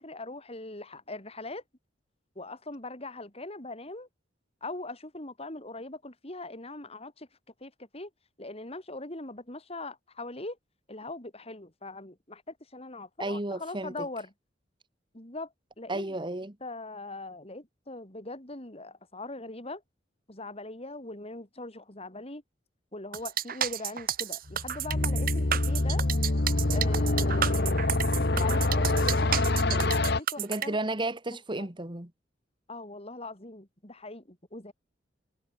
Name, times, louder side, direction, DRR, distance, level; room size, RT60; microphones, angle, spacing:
voice 1, 0.0-1.6 2.4-4.1 4.6-7.3 7.6-8.1 8.4-10.6 10.9-14.3 15.1-16.2 16.6-19.8 20.3-22.4 22.9-26.0 26.7-27.9 28.3-30.8 31.6-31.7 32.7-34.7, left 2 dB, 30° left, 4.5 m, -41 dB
voice 2, 13.2-13.9 15.9-16.5 30.4-32.1, right 2 dB, 25° right, 1.8 m, -32 dB
sound 1, 23.1-30.7, right 10 dB, 50° right, 1.1 m, -31 dB
sound 2, 24.5-30.2, left 2 dB, 60° left, 1.4 m, -26 dB
head